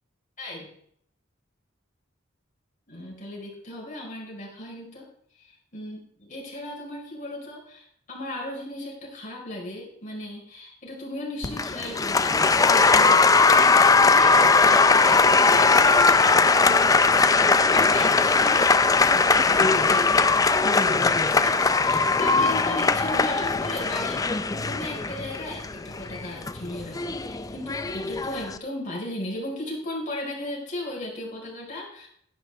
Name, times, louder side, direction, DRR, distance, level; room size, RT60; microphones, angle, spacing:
voice 1, 0.4-0.7 2.9-5.1 5.4-32.1, left 1 dB, 40° left, -2 dB, 4.4 m, -36 dB
Applause, 11.4-28.6, left 4 dB, 20° left, 0.4 m, -20 dB
12.0 x 10.5 x 3.4 m, 0.67 s
head